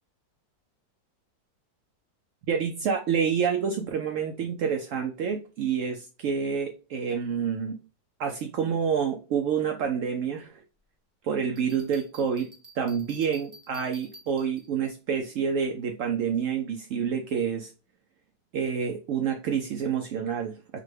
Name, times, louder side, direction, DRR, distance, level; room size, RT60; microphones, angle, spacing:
voice 1, 2.5-7.8 8.2-10.6 11.2-12.5 12.8-17.7 18.5-20.8, right 7 dB, 80° right, 5 dB, 0.7 m, -28 dB
Bell, 11.6-14.9, right 1 dB, 25° right, 0.6 m, -51 dB
5.9 x 2.1 x 3.2 m, 0.32 s
omnidirectional pair, 1.9 m